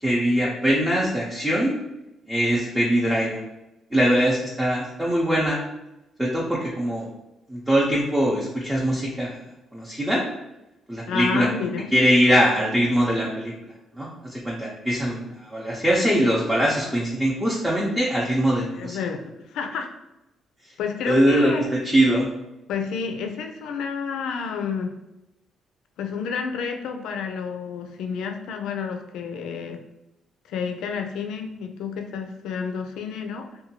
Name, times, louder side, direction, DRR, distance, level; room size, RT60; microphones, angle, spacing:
voice 1, 0.0-1.7 2.3-3.4 3.9-5.6 6.2-7.1 7.5-9.4 9.7-10.2 10.9-11.5 11.9-13.5 14.0-19.0 21.1-22.3, equal, 10° right, -5 dB, 0.6 m, -22 dB
voice 2, 11.1-11.9 18.8-19.9 20.8-21.7 22.7-25.0 26.0-29.8 30.5-33.6, left 6 dB, 85° left, 5 dB, 0.3 m, -30 dB
2.7 x 2.2 x 2.8 m, 0.92 s
cardioid pair, 90°, 0 cm